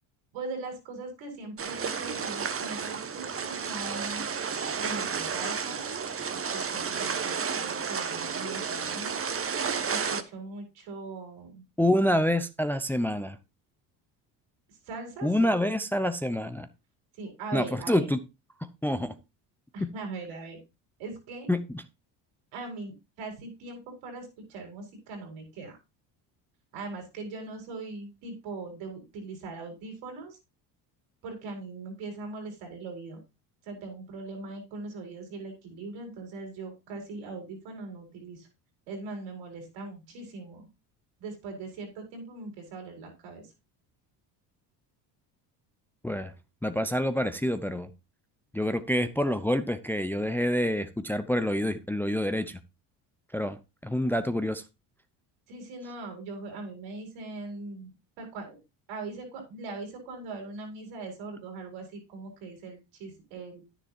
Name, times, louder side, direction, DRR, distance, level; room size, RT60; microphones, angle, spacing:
voice 1, 0.3-4.3 4.8-5.9 6.3-9.2 9.9-11.6 14.9-15.5 17.2-18.1 19.7-20.6 21.0-21.5 22.5-25.8 26.7-30.4 31.2-33.2 33.6-38.5 38.9-40.7 41.2-43.4 55.5-57.9 58.2-58.6 58.9-63.6, right 3 dB, 75° right, 2 dB, 4.7 m, -40 dB
sound 1, 1.6-10.2, right 6 dB, 30° right, 1.1 m, -32 dB
voice 2, 11.8-13.4 15.2-16.7 17.5-18.2 18.8-19.1 19.8-19.9 21.5-21.8 46.0-46.3 46.6-47.9 48.5-52.6 53.3-53.6 53.8-54.6, left 1 dB, 5° left, 11 dB, 0.6 m, -27 dB
10.0 x 10.0 x 2.8 m, 0.25 s
supercardioid pair, 75°, 47 cm